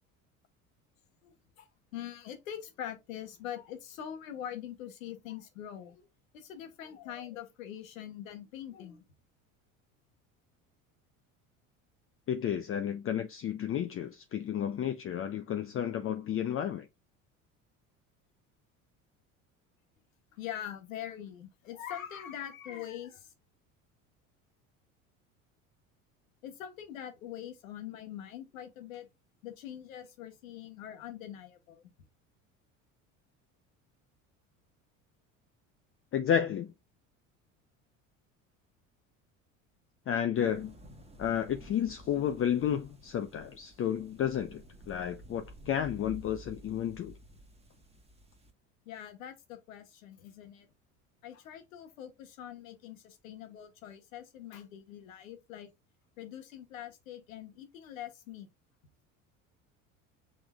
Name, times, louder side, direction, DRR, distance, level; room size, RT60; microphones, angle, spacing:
voice 1, 1.2-1.7 1.9-6.1 6.3-9.0 20.3-23.3 26.4-29.1 29.4-31.8 48.9-50.7 51.2-55.7 56.2-58.5, left 10 dB, 80° left, 1.2 m, -43 dB
voice 2, 12.3-16.9 36.1-36.7 40.1-40.7 41.2-47.1, left 9 dB, 35° left, 0.6 m, -32 dB
sound 1, 40.3-48.5, equal, 15° right, 1.3 m, -52 dB
6.0 x 3.7 x 2.3 m
hypercardioid pair, 70°, 40 cm